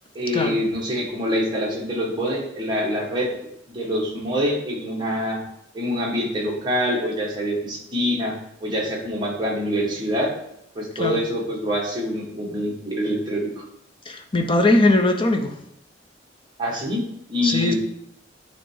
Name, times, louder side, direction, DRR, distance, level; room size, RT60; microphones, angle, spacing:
voice 1, 0.2-3.3 3.7-5.4 5.7-8.3 8.6-10.3 10.8-13.5 16.6-17.0 17.3-17.7, equal, 25° right, -3 dB, 1.7 m, -25 dB
voice 2, 14.1-15.5 17.4-17.7, left 2 dB, 25° left, 5 dB, 0.7 m, -20 dB
9.2 x 3.4 x 4.6 m, 0.77 s
head